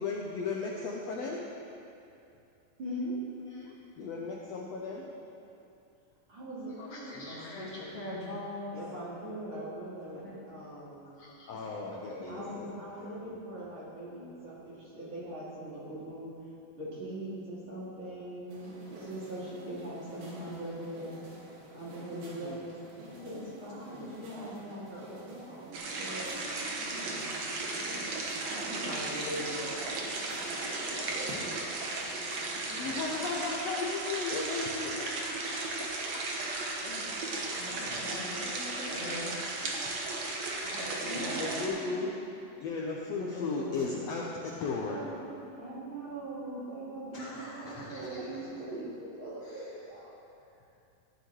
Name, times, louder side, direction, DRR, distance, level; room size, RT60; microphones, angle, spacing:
voice 1, 0.0-1.4 3.5-5.1 6.7-7.8 11.1-13.4 22.1-22.6 23.9-24.2 31.0-31.1 31.5-31.9 32.5-36.2 38.4-38.7 40.1-41.0 41.3-42.2 42.6-45.1 47.8-48.2, left 4 dB, 80° left, -2 dB, 1.5 m, -37 dB
voice 2, 2.8-3.2 6.3-7.1 8.7-11.1 12.3-16.3 16.8-21.2 21.7-22.7 23.0-26.4 26.8-32.0 41.0-42.1 45.6-50.1, right 1 dB, 40° right, -9 dB, 3.0 m, -41 dB
voice 3, 7.1-9.0 10.1-10.4 11.5-11.9 12.4-13.1 13.6-13.7 20.1-20.8 23.0-23.5 28.9-29.2 32.6-33.0 36.8-37.1 37.5-39.4 40.6-41.5 42.3-42.4 43.1-44.0 44.7-45.5 47.1-48.6 49.4-49.8, left 1 dB, 45° left, -8 dB, 2.6 m, -43 dB
sound 1, 18.5-33.4, equal, 80° right, 3.8 m, -50 dB
sound 2, 25.7-41.7, right 2 dB, 60° right, 2.0 m, -35 dB
16.0 x 11.5 x 3.2 m, 2.6 s
omnidirectional pair, 4.1 m